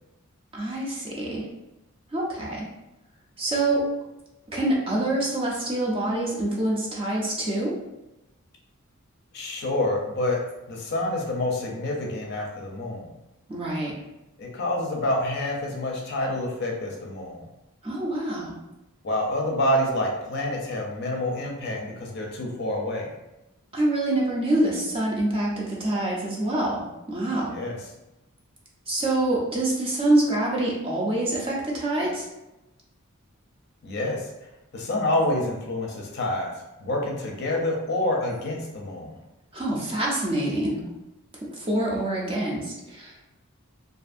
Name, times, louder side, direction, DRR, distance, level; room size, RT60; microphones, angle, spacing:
voice 1, 0.5-1.5 2.1-2.7 3.4-3.8 4.5-7.8 13.5-13.9 17.8-18.5 23.7-27.5 28.9-32.3 39.5-40.8 41.5-43.4, right 1 dB, 25° right, -3 dB, 0.5 m, -26 dB
voice 2, 9.3-10.4 10.7-13.1 14.4-17.4 19.0-23.1 27.5-27.8 33.8-34.3 34.7-36.5 36.8-39.1, left 1 dB, 50° left, 0 dB, 0.5 m, -27 dB
2.5 x 2.5 x 2.5 m, 0.96 s
head